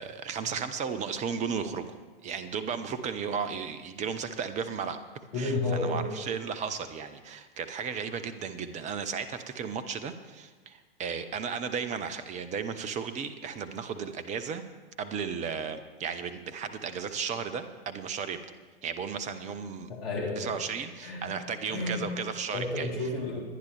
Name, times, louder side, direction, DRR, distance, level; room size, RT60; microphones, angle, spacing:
voice 1, 0.0-5.0 5.4-14.6 15.0-18.4 18.8-19.9 20.4-22.9, right 6 dB, 25° right, 11 dB, 0.8 m, -34 dB
voice 2, 5.3-6.1 19.9-20.6 21.0-21.4 21.7-22.1 22.5-23.4, left 2 dB, 70° left, -4 dB, 4.2 m, -31 dB
22.5 x 9.8 x 3.3 m, 1.3 s
figure-of-eight pair, 95°, 30 cm